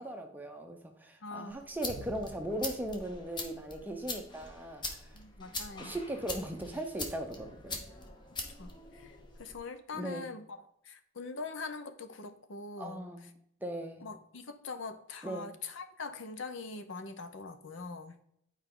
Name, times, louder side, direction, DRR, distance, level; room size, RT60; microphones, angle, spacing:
voice 1, 0.0-5.1 5.8-7.8 9.9-10.3 12.8-13.3 13.6-14.1 15.2-15.5, right 1 dB, 10° right, 4 dB, 0.6 m, -38 dB
voice 2, 1.2-1.7 5.1-6.0 8.5-10.6 10.8-13.1 14.0-18.2, left 4 dB, 65° left, 9 dB, 0.6 m, -43 dB
sound 1, 1.5-9.6, left 2 dB, 20° left, 0.8 m, -43 dB
9.0 x 4.6 x 3.7 m, 0.73 s
head